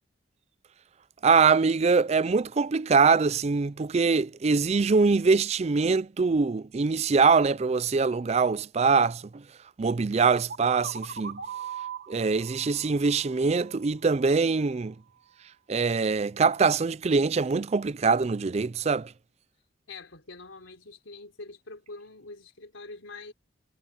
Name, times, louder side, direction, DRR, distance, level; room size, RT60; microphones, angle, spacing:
voice 1, 1.2-9.4 9.8-11.4 12.1-14.9 15.7-19.1, right 4 dB, 35° right, 0.4 m, -23 dB
sound 1, 10.5-14.3, right 7 dB, 55° right, 1.7 m, -40 dB
voice 2, 19.9-23.3, left 3 dB, 85° left, 3.9 m, -44 dB
head